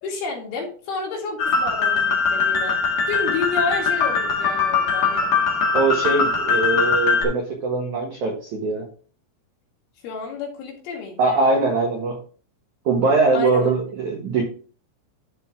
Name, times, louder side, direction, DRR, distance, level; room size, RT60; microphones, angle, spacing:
voice 1, 0.0-2.8 3.1-5.3 6.3-6.4 10.0-11.4 13.3-13.7, left 4 dB, 70° left, -1 dB, 4.5 m, -30 dB
sound 1, 1.4-7.2, left 5 dB, 50° left, 2.2 m, -21 dB
voice 2, 5.7-8.9 11.2-12.2 12.8-14.4, right 3 dB, 90° right, 0 dB, 1.7 m, -21 dB
13.0 x 4.5 x 3.7 m, 0.41 s
omnidirectional pair, 5.9 m